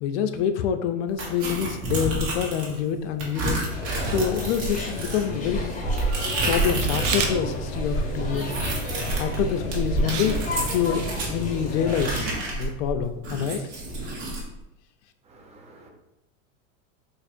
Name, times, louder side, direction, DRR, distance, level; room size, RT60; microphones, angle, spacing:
voice 1, 0.0-5.8 6.4-8.5 9.2-10.4 10.7-13.6, left 8 dB, 65° left, 8 dB, 0.5 m, -27 dB
sound 1, 1.2-2.8 3.2-7.3 7.6-11.3 11.9-14.4, right 2 dB, 40° right, 1.2 m, -29 dB
sound 2, 3.7-12.0, left 1 dB, 20° left, 0.7 m, -32 dB
Camera, 6.8-7.3 9.4-9.6 10.1-10.4 10.7-10.8, right 6 dB, 70° right, 0.7 m, -29 dB
voice 2, 15.3-15.9, right 2 dB, 20° right, 2 dB, 0.4 m, -50 dB
4.1 x 2.5 x 2.5 m, 0.90 s
supercardioid pair, 125°, 38 cm